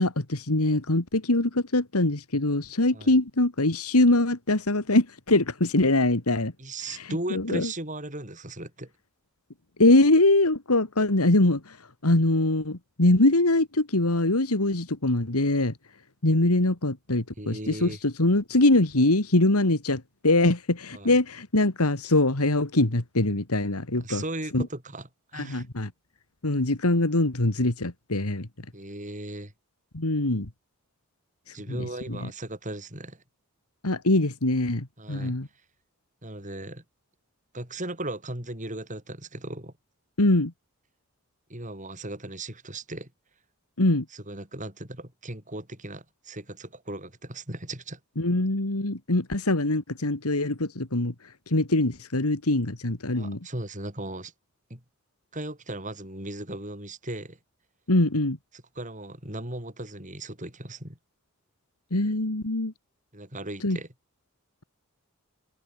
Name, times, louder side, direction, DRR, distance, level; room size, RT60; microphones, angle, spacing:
voice 1, 0.0-6.5 6.9-7.7 9.8-11.8 12.0-15.7 16.2-24.2 24.5-24.7 25.3-25.9 26.4-28.5 29.9-30.5 31.5-32.2 33.8-35.5 40.2-40.5 43.8-44.0 48.2-51.1 51.5-53.4 57.9-58.4 61.9-62.7 63.6-63.8, left 2 dB, 85° left, 2.4 m, -23 dB
voice 2, 6.6-8.9 17.4-18.0 20.9-21.1 24.0-25.6 28.7-29.5 31.5-33.2 35.0-35.4 36.2-36.8 37.5-39.7 41.5-43.1 44.1-48.0 53.1-54.3 54.7-54.8 55.3-57.4 58.7-61.0 63.1-63.9, right 1 dB, 35° right, 6.9 m, -37 dB
head